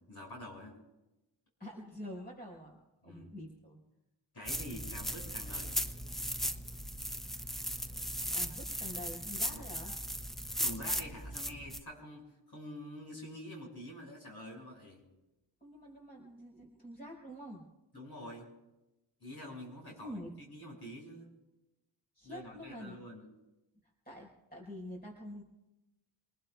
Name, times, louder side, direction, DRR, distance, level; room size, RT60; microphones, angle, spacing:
voice 1, 0.1-0.8 3.0-3.3 4.3-5.8 9.5-9.6 10.6-15.0 17.9-18.5 19.2-21.3 22.2-23.3, equal, 55° left, -2 dB, 6.3 m, -47 dB
voice 2, 1.6-2.8 3.0-3.8 8.3-9.9 15.6-17.6 20.0-20.3 22.2-23.0 24.0-25.4, equal, 20° left, -3 dB, 4.7 m, -46 dB
sound 1, 4.5-11.8, equal, ahead, 0.7 m, -37 dB
28.5 x 20.0 x 2.4 m, 0.97 s
wide cardioid pair, 75°, 46 cm